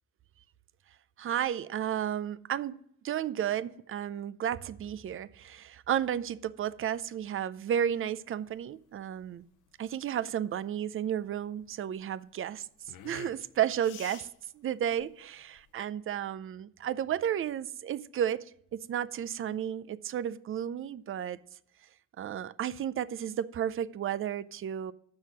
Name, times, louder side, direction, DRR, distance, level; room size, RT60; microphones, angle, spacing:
voice 1, 1.2-2.8 3.0-9.4 9.8-12.7 13.0-14.3 14.5-18.5 18.7-21.4 22.2-24.9, right 10 dB, 40° right, 0.5 m, -32 dB
sound 1, 7.8-15.8, left 10 dB, 70° left, 0.7 m, -52 dB
7.4 x 6.2 x 6.2 m
cardioid pair, 100°, 32 cm